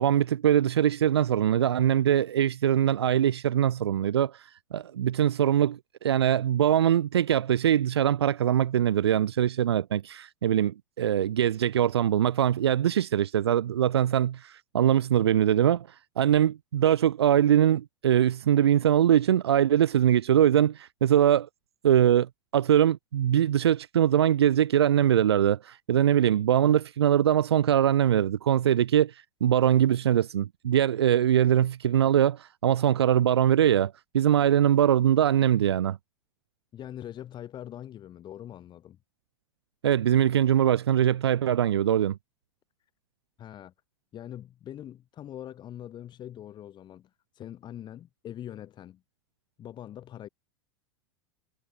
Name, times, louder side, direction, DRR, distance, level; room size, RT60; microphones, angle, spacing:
voice 1, 0.0-21.5 21.8-36.0 39.8-42.2, right 10 dB, 70° right, 0.9 m, -22 dB
voice 2, 36.7-39.0 42.8-42.9 43.4-43.7 44.1-49.0 49.6-50.3, left 11 dB, 30° left, 5.4 m, -43 dB
figure-of-eight pair, 85°, 14 cm